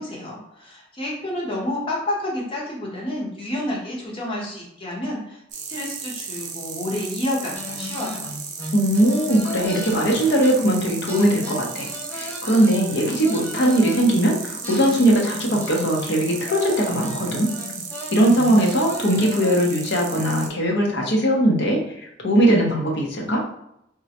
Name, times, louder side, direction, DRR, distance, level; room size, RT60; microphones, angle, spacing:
voice 1, 0.0-5.4 5.7-8.2, left 1 dB, 30° left, -4 dB, 0.9 m, -29 dB
sound 1, 5.5-20.5, right 5 dB, 40° right, 0.5 m, -35 dB
sound 2, 7.5-10.8 11.1-14.1 14.6-19.9, left 2 dB, 10° left, 0.5 m, -36 dB
voice 2, 8.7-11.9 12.1-17.5 18.1-21.8 22.2-23.4, right 1 dB, 65° left, 0 dB, 0.8 m, -20 dB
3.7 x 2.1 x 2.8 m, 0.78 s
head